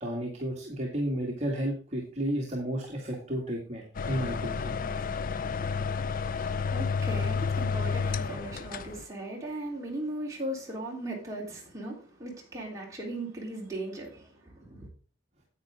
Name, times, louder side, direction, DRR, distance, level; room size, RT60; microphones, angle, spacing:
voice 1, 0.0-5.0, right 1 dB, 35° right, 2.0 m, -32 dB
sound 1, 3.9-9.0, left 5 dB, 50° left, 0.5 m, -31 dB
voice 2, 6.0-14.9, right 1 dB, 20° right, 3.6 m, -38 dB
10.0 x 8.5 x 3.7 m
head